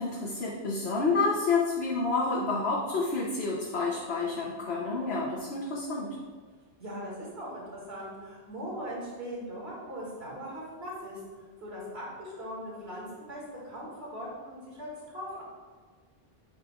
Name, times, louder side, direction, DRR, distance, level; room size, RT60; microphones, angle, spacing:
voice 1, 0.0-6.1, left 3 dB, 80° left, -4 dB, 1.2 m, -29 dB
voice 2, 6.8-11.2 11.6-15.4, equal, 85° right, -5 dB, 2.4 m, -40 dB
9.6 x 5.5 x 2.4 m, 1.5 s
omnidirectional pair, 1.0 m